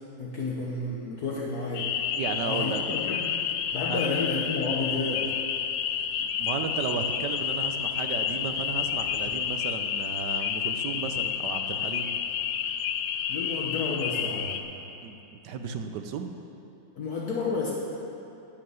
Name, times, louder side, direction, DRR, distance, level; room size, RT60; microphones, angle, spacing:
voice 1, 0.2-1.9 2.4-3.3 3.7-5.3 13.3-14.7 16.9-17.7, left 3 dB, 60° left, -3 dB, 1.5 m, -31 dB
sound 1, 1.7-14.6, left 8 dB, 75° left, 1.3 m, -30 dB
voice 2, 2.1-2.8 3.9-4.0 6.2-12.1 15.0-15.2 15.4-16.3, right 6 dB, 70° right, 7 dB, 1.3 m, -34 dB
11.0 x 6.8 x 7.7 m, 2.8 s
omnidirectional pair, 2.0 m